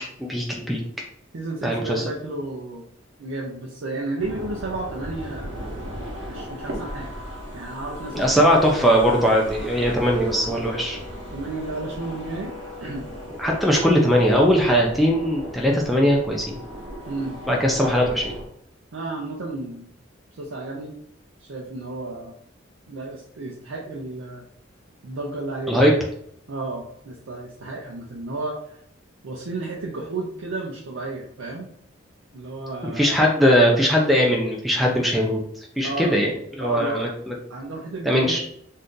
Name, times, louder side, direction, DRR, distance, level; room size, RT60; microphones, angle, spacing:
voice 1, 0.2-0.8 1.6-2.0 8.1-11.0 13.4-16.6 17.5-18.2 25.7-25.9 32.8-35.4 35.8-36.3 36.6-37.3 38.0-38.4, equal, ahead, -2 dB, 0.3 m, -20 dB
voice 2, 1.3-2.8 3.2-5.6 6.3-7.1 7.5-8.5 11.3-12.5 12.8-13.1 17.1-17.4 18.9-19.9 20.4-21.0 21.4-22.3 22.9-24.4 25.0-25.9 26.5-28.8 29.2-31.7 32.3-33.2 35.8-36.2 36.6-37.1 37.5-38.4, right 2 dB, 90° right, -2 dB, 0.5 m, -32 dB
sound 1, 4.2-18.4, equal, 65° right, 0.9 m, -36 dB
2.7 x 2.4 x 3.6 m, 0.70 s
head